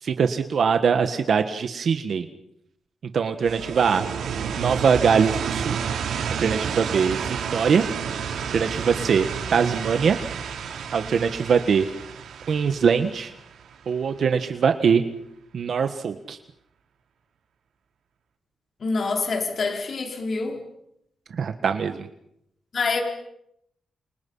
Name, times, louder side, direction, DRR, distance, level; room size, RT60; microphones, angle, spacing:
voice 1, 0.0-2.3 3.1-4.0 4.6-5.8 6.4-7.8 8.5-10.2 10.9-11.8 12.5-13.3 13.9-15.0 15.5-16.4 21.3-22.1, right 6 dB, 60° right, 7 dB, 1.7 m, -22 dB
sound 1, 3.4-14.2, right 7 dB, 90° right, 3.8 m, -30 dB
voice 2, 18.8-20.6 22.7-23.0, left 4 dB, 50° left, 3 dB, 4.6 m, -26 dB
29.0 x 28.5 x 5.7 m, 0.77 s
cardioid pair, 115°, 0 cm